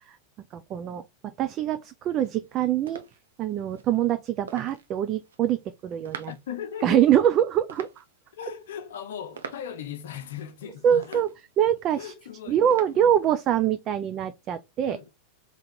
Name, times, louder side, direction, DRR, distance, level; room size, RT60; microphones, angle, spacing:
voice 1, 0.5-3.0 3.4-6.3 6.8-8.0 10.8-11.3 11.6-12.1 12.5-15.0, right 10 dB, 35° right, 0.4 m, -24 dB
sound 1, 2.1-13.4, right 6 dB, 65° right, 0.7 m, -47 dB
voice 2, 6.3-7.1 8.3-11.2 12.0-13.2 14.9-15.1, left 8 dB, 60° left, 0.6 m, -38 dB
3.7 x 2.9 x 4.2 m
figure-of-eight pair, 90°, 0 cm